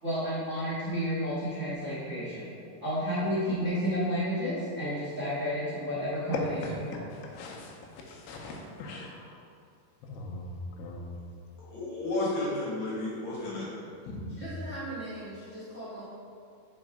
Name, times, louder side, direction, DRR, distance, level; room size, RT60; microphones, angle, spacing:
voice 1, 0.0-2.5 2.8-7.0 14.4-16.0, equal, 60° right, -10 dB, 0.7 m, -32 dB
voice 2, 8.3-9.2 10.1-10.5 10.8-11.1 14.1-14.4, left 2 dB, 85° left, -1 dB, 2.9 m, -40 dB
voice 3, 11.6-13.7, left 2 dB, 55° left, -7 dB, 2.5 m, -32 dB
5.4 x 5.2 x 5.0 m, 2.4 s
omnidirectional pair, 4.5 m